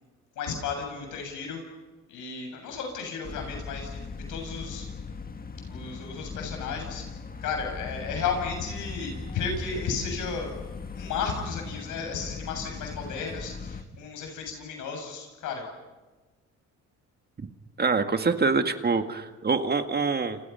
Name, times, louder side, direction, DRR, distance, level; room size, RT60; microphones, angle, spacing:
voice 1, 0.4-1.6 2.1-4.9 5.7-7.0 7.4-10.5 10.9-15.7, left 5 dB, 90° left, 3 dB, 7.4 m, -33 dB
sound 1, 3.2-13.8, left 4 dB, 30° left, 1.8 m, -39 dB
voice 2, 17.8-20.4, right 4 dB, 35° right, 7 dB, 1.9 m, -25 dB
29.5 x 28.5 x 5.8 m, 1.2 s
cardioid pair, 90°, 30 cm